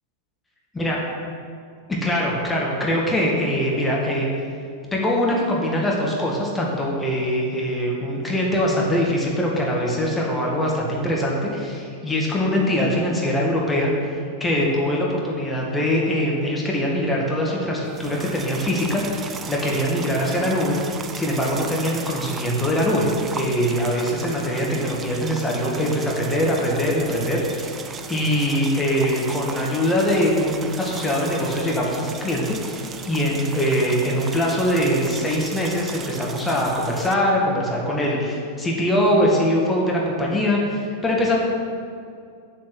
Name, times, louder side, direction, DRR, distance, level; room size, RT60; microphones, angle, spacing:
voice 1, 2.0-4.3 4.9-13.9 14.4-27.7 28.1-41.4, equal, 10° left, -3 dB, 2.1 m, -22 dB
sound 1, 17.9-37.1, right 5 dB, 25° right, 0.6 m, -36 dB
7.6 x 7.6 x 7.9 m, 2.4 s
figure-of-eight pair, 90°, 0 cm